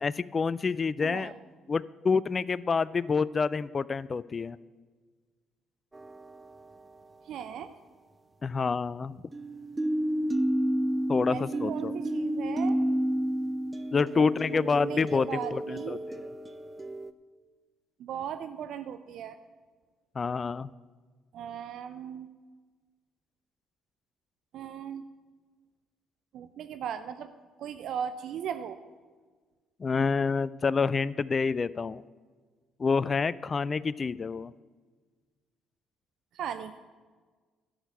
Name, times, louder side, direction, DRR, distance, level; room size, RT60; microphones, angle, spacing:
voice 1, 0.0-1.3 1.7-4.6 8.4-9.2 11.1-11.9 13.9-16.2 20.2-20.7 29.8-32.0 32.8-34.5, left 5 dB, 35° left, 20 dB, 0.3 m, -28 dB
voice 2, 1.0-1.4 7.2-7.7 11.3-12.8 14.1-14.3 14.5-16.0 18.0-19.4 21.3-22.3 24.5-25.0 26.3-27.3 27.6-28.8 36.3-36.8, right 8 dB, 60° right, 11 dB, 0.5 m, -37 dB
sound 1, 5.9-6.8 9.3-17.1, right 1 dB, 20° right, 0.7 m, -31 dB
12.0 x 6.4 x 8.4 m, 1.4 s
hypercardioid pair, 50°, 0 cm